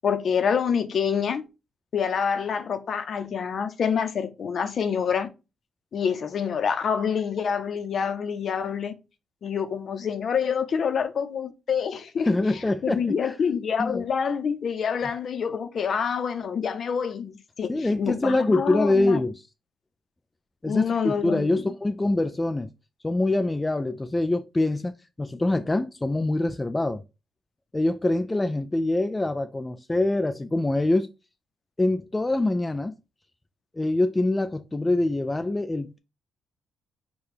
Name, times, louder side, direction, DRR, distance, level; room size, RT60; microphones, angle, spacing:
voice 1, 0.0-1.4 1.9-5.3 5.9-8.9 9.4-12.3 12.8-19.2 20.7-21.6, left 7 dB, 55° left, 0.7 m, -27 dB
voice 2, 12.3-13.3 13.8-14.0 17.7-19.4 20.6-22.7 23.0-24.9 25.2-27.0 27.7-31.1 31.8-32.9 33.7-36.0, left 2 dB, 15° left, 0.3 m, -24 dB
4.9 x 2.3 x 4.4 m
cardioid pair, 90°, 0 cm